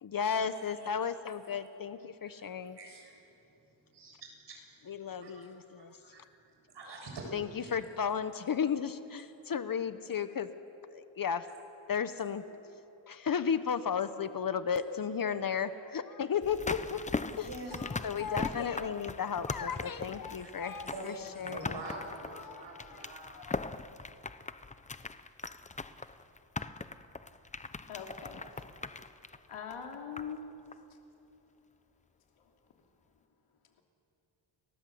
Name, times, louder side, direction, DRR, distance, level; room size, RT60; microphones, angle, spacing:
voice 1, 0.0-2.8 4.9-6.0 7.3-10.5 10.9-11.5 11.9-12.7 13.1-17.0 17.3-17.5 17.8-21.8 22.4-22.6 23.0-23.1 23.4-23.6, left 7 dB, 45° left, 12 dB, 1.0 m, -34 dB
voice 2, 0.6-0.9 2.2-3.2 3.9-4.6 5.2-5.5 5.8-7.3 7.6-7.7 17.3-17.8 20.4-20.5 20.8-23.4, right 2 dB, 60° right, 1 dB, 7.2 m, -46 dB
sound 1, 16.4-30.4 30.7-30.8, left 3 dB, 15° left, 0.7 m, -40 dB
voice 3, 27.9-28.6 29.5-30.5, left 6 dB, 90° left, 2 dB, 3.1 m, -42 dB
30.0 x 19.0 x 7.8 m, 2.9 s
cardioid pair, 110°, 48 cm